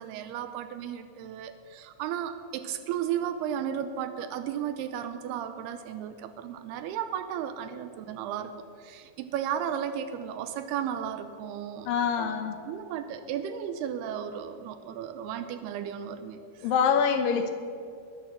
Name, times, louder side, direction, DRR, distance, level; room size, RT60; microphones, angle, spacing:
voice 1, 0.0-8.5 8.8-11.9 12.2-12.4 12.7-16.7 17.3-17.4, right 9 dB, 90° right, 9 dB, 2.7 m, -34 dB
voice 2, 11.9-12.6 16.6-17.5, left 6 dB, 70° left, 7 dB, 2.4 m, -25 dB
21.0 x 8.9 x 7.2 m, 2.4 s
omnidirectional pair, 4.7 m